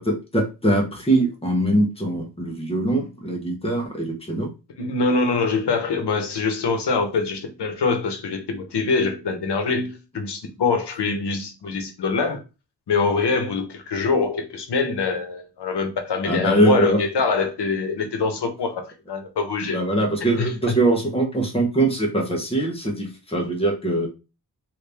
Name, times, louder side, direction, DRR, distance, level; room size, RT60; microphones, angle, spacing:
voice 1, 0.0-4.5 16.2-17.0 19.6-24.1, right 1 dB, 15° left, 0.9 m, -22 dB
voice 2, 4.8-12.4 12.9-19.8 20.2-20.7, left 4 dB, 90° left, 0.9 m, -24 dB
3.1 x 2.6 x 3.3 m
wide cardioid pair, 160°, 40 cm